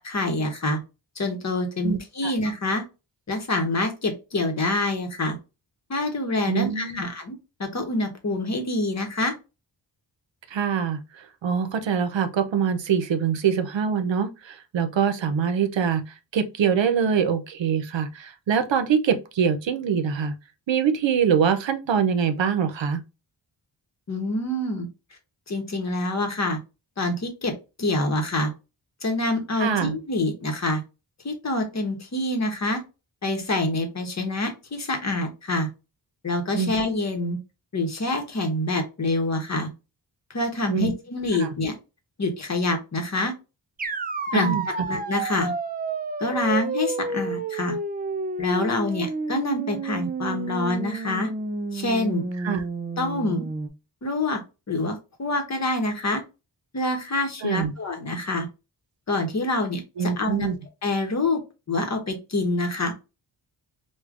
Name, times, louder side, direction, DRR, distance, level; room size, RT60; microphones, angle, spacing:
voice 1, 0.0-0.8 1.2-2.8 3.3-5.4 5.9-7.3 7.6-9.3 24.1-24.9 25.5-26.6 27.0-27.5 27.8-28.5 29.0-30.8 31.2-32.8 33.2-35.7 36.2-37.4 37.7-39.7 40.3-41.7 42.2-43.3 44.3-44.6 44.9-45.5 46.2-47.8 48.4-51.3 51.7-52.2 53.0-53.5 54.0-54.4 54.7-56.2 56.7-58.5 59.1-60.5 60.8-61.4 61.7-62.9, left 2 dB, 35° left, 0.9 m, -26 dB
voice 2, 1.8-2.3 6.5-7.0 10.5-11.0 11.4-16.0 16.3-20.3 20.7-23.0 29.6-30.0 36.5-36.7 40.7-40.9 41.4-41.5 44.3-44.7 52.4-52.6 57.4-57.7 60.0-60.6, right 7 dB, 80° right, 0.7 m, -24 dB
sound 1, 43.8-53.7, right 3 dB, 25° right, 0.3 m, -30 dB
4.8 x 2.2 x 2.4 m
wide cardioid pair, 115°, 44 cm